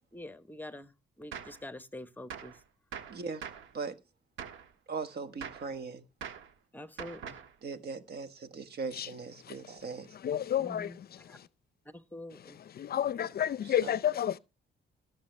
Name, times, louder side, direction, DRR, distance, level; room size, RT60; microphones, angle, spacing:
voice 1, 0.1-0.9 1.2-2.5 6.7-7.4 10.6-11.0 11.3-11.4 11.9-12.6, left 1 dB, 10° left, 0.9 m, -45 dB
Gunshot gunfire, 1.3-1.6 2.3-2.6 2.9-3.7 4.4-4.7 5.4-5.7 6.2-6.5 7.0-7.5, right 7 dB, 80° right, 1.3 m, -43 dB
voice 2, 3.1-3.4 3.7-4.0 4.9-6.0 7.6-10.1 13.6-13.9, right 4 dB, 55° right, 1.3 m, -39 dB
voice 3, 10.2-11.2 12.5-14.4, left 10 dB, 50° left, 0.5 m, -31 dB
18.0 x 6.7 x 3.2 m
cardioid pair, 90°, 20 cm